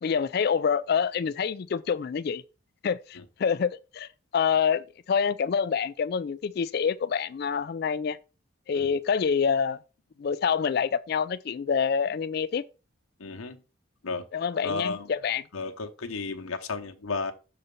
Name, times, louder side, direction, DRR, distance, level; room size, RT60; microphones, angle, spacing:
voice 1, 0.0-2.4 2.8-8.2 8.7-9.8 10.2-12.6 14.3-15.4, left 6 dB, 50° left, 0.3 m, -27 dB
voice 2, 13.2-13.6 14.0-14.2 14.6-15.1 15.5-17.3, left 4 dB, 85° left, 0.9 m, -33 dB
6.8 x 4.2 x 5.2 m
head